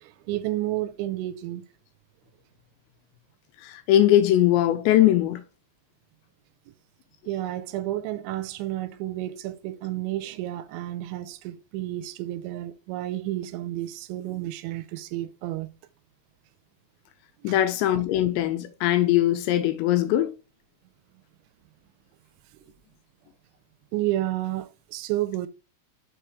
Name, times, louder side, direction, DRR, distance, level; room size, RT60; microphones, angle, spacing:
voice 1, 0.0-1.6 7.3-15.7 17.4-17.6 23.9-25.5, right 15 dB, 85° right, 2.9 m, -31 dB
voice 2, 3.6-5.4 17.4-20.3, left 12 dB, 85° left, 2.7 m, -21 dB
6.3 x 5.0 x 4.5 m
omnidirectional pair, 5.4 m